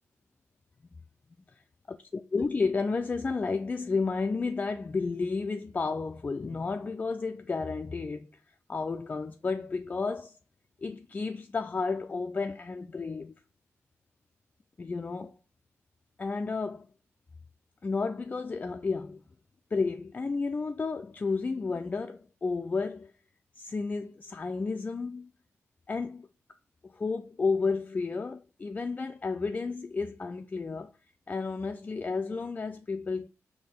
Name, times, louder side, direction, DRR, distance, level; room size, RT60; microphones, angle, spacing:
voice 1, 1.9-10.4 10.8-13.3 14.8-15.3 16.2-16.9 17.8-19.2 19.7-23.1 23.6-25.3 25.9-26.3 26.8-30.9 31.3-33.3, left 4 dB, 30° left, 0.3 m, -32 dB
4.2 x 2.8 x 3.5 m
cardioid pair, 80°, 5 cm